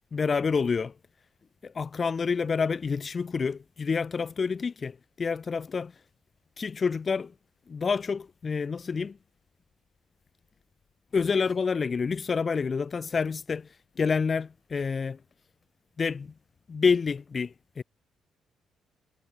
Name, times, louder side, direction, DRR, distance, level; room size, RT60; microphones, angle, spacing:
voice 1, 0.1-0.9 1.6-5.9 6.6-7.3 7.7-9.2 11.1-13.6 14.0-15.2 16.0-16.3 16.7-17.8, left 5 dB, 40° left, 1.7 m, -28 dB
cardioid pair, 90°, 0 cm